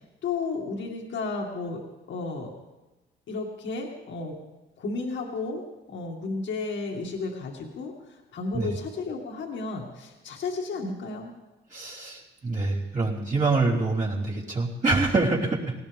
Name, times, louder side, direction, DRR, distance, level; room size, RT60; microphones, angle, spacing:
voice 1, 0.2-1.8 2.1-2.5 3.3-4.3 4.8-5.6 5.9-11.3, left 3 dB, 70° left, 1 dB, 2.2 m, -33 dB
voice 2, 11.7-15.7, right 3 dB, 40° right, -4 dB, 3.5 m, -25 dB
19.5 x 18.0 x 3.6 m, 1.1 s
cardioid pair, 90°, 20 cm